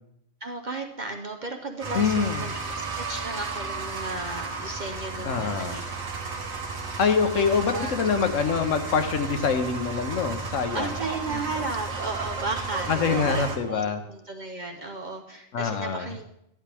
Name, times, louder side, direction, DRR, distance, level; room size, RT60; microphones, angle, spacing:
voice 1, 0.4-5.8 7.3-8.1 8.4-8.6 10.7-16.3, right 3 dB, 45° right, 3 dB, 0.7 m, -35 dB
sound 1, 1.8-13.6, right 4 dB, 85° right, 1.8 m, -33 dB
voice 2, 1.9-2.5 5.2-5.7 7.0-10.9 11.3-11.4 12.9-14.0 15.5-16.1, left 5 dB, 70° left, 7 dB, 1.2 m, -25 dB
11.5 x 11.0 x 3.4 m, 0.80 s
omnidirectional pair, 1.4 m